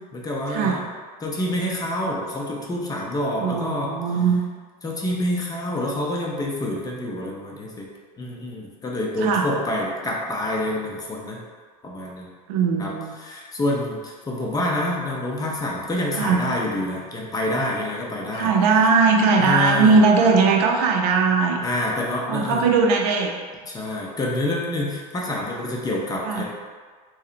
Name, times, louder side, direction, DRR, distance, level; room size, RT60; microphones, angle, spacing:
voice 1, 0.1-0.8 1.2-4.1 4.8-7.9 8.2-11.4 11.8-12.3 12.8-12.9 13.2-18.5 19.4-20.0 21.6-22.7 23.7-26.4, left 1 dB, 20° left, -3 dB, 0.4 m, -27 dB
voice 2, 3.4-4.4 9.2-9.5 12.5-13.1 16.2-16.5 18.3-21.6 22.3-23.3 26.2-26.4, right 4 dB, 70° right, 1 dB, 0.4 m, -19 dB
2.7 x 2.0 x 2.4 m, 1.5 s
supercardioid pair, 105°, 20 cm